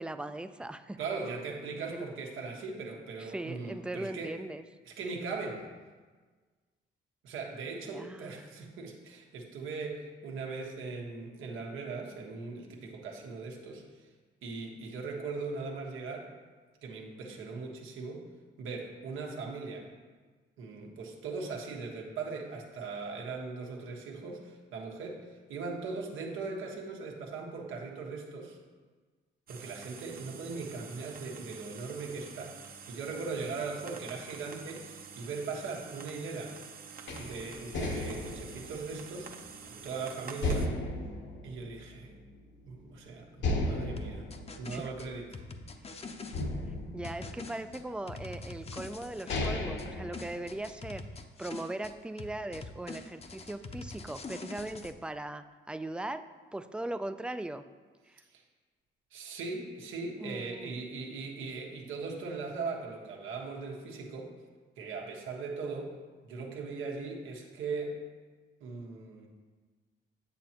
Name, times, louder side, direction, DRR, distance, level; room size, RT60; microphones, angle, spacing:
voice 1, 0.0-1.0 1.9-2.1 3.2-4.6 7.8-8.4 44.7-44.9 46.9-51.1 51.4-56.3 56.5-57.6 58.1-58.2 60.2-60.8, right 1 dB, 5° right, 10 dB, 0.4 m, -39 dB
voice 2, 1.0-4.4 4.9-5.7 7.2-14.1 14.4-16.3 16.8-18.3 18.6-19.9 20.6-28.6 29.5-36.6 37.2-39.3 39.7-40.7 41.4-42.2 42.7-44.2 44.6-45.4 58.3-58.4 59.1-64.3 64.8-65.9 66.2-68.0 68.6-69.3, right 4 dB, 90° right, 0 dB, 1.4 m, -39 dB
sound 1, 29.5-40.7, right 6 dB, 45° right, 0.8 m, -48 dB
sound 2, 37.1-39.9 40.4-42.4 42.7-42.8 43.4-45.8 46.3-47.9 48.7-48.8 49.1-50.9, left 2 dB, 65° left, 1.1 m, -35 dB
sound 3, 44.0-46.5 47.0-49.9 50.1-51.9 52.2-54.9, left 3 dB, 30° left, 0.7 m, -44 dB
9.1 x 7.4 x 2.9 m, 1.4 s
cardioid pair, 90°, 20 cm